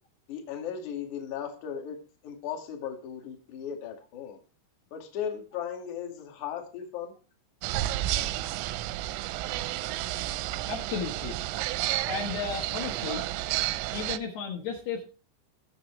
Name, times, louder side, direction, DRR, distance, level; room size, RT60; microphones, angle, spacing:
voice 1, 0.3-4.4 4.9-7.1, left 8 dB, 50° left, 2.7 m, -37 dB
sound 1, 7.6-14.2, right 15 dB, 90° right, 3.3 m, -31 dB
voice 2, 10.7-11.4 12.1-13.2 13.9-15.0, left 6 dB, 65° left, 3.1 m, -34 dB
22.0 x 7.3 x 3.3 m
omnidirectional pair, 5.8 m